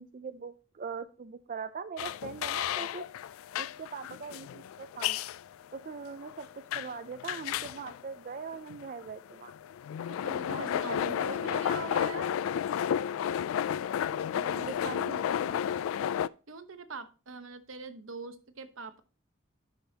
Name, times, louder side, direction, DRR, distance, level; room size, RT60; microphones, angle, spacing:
voice 1, 0.0-3.1 3.6-5.2 5.7-9.5 10.5-11.6 14.3-15.6, right 5 dB, 40° right, 9 dB, 0.4 m, -42 dB
sound 1, 2.0-16.3, left 9 dB, 90° left, 0.3 m, -32 dB
voice 2, 10.1-12.3 16.5-19.0, right 3 dB, 75° right, 10 dB, 0.9 m, -43 dB
10.5 x 5.9 x 2.8 m, 0.34 s
head